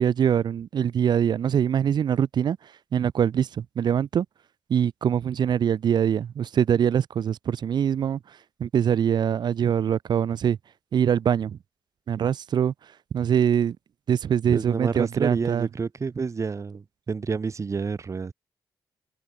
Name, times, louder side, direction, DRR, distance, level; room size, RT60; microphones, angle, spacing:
voice 1, 0.0-2.6 2.9-4.3 4.7-8.2 8.6-10.6 10.9-11.6 12.1-12.7 13.1-13.8 14.1-15.7, right 8 dB, 60° right, 0.4 m, -23 dB
voice 2, 14.5-18.3, right 5 dB, 35° right, 0.9 m, -29 dB
open air
cardioid pair, 90°, 8 cm